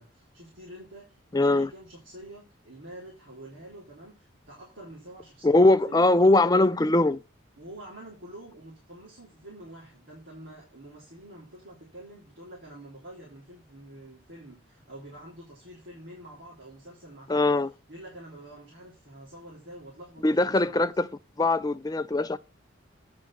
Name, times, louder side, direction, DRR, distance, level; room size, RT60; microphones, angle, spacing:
voice 1, 0.0-6.1 7.6-17.6 17.9-20.8, right 1 dB, 75° right, 3.6 m, -47 dB
voice 2, 1.3-1.7 5.4-7.2 17.3-17.7 20.2-21.1 21.4-22.4, left 2 dB, 20° left, 0.5 m, -21 dB
9.5 x 4.5 x 5.8 m
head